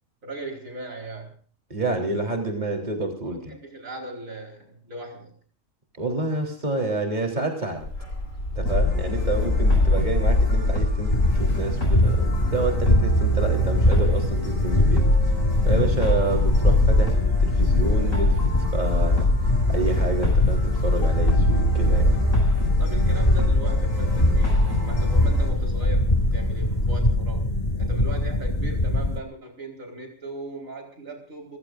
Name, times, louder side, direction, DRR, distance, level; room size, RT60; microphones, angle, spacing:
voice 1, 0.2-1.3 3.2-5.3 9.0-9.3 22.8-27.5 27.7-31.6, right 2 dB, 80° right, 2 dB, 4.9 m, -38 dB
voice 2, 1.7-3.4 6.0-7.9 8.6-15.0 15.7-22.1, right 2 dB, 35° right, 3 dB, 3.8 m, -29 dB
Bark, 7.8-26.9, left 2 dB, 70° left, 4.0 m, -25 dB
sound 1, 8.7-25.5, equal, 90° left, 8.4 m, -27 dB
sound 2, 11.1-29.2, left 1 dB, 30° left, 2.4 m, -24 dB
29.5 x 16.0 x 2.5 m, 0.42 s
omnidirectional pair, 1.4 m